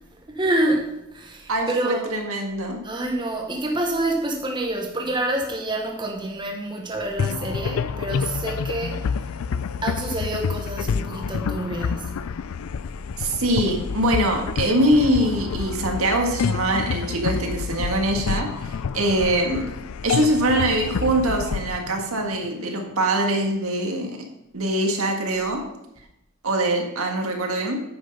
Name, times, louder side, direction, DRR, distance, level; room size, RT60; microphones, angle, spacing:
voice 1, 0.1-2.2 2.8-9.1 9.8-12.2, right 1 dB, 20° right, 1 dB, 1.0 m, -27 dB
voice 2, 1.5-2.8 13.2-19.7 20.0-24.2 24.5-25.6 26.4-27.9, right 1 dB, 70° right, 2 dB, 1.7 m, -23 dB
sound 1, 7.2-22.8, left 6 dB, 75° left, 0.4 m, -28 dB
9.5 x 6.4 x 5.4 m, 0.85 s
head